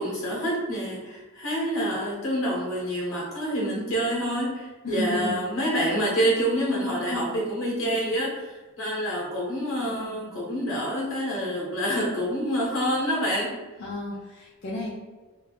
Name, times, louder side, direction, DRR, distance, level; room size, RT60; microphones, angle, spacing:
voice 1, 0.0-13.5, equal, 70° left, -4 dB, 1.1 m, -27 dB
voice 2, 4.8-5.4 13.8-14.9, left 1 dB, 45° left, -6 dB, 0.4 m, -32 dB
3.5 x 2.3 x 2.3 m, 1.2 s
head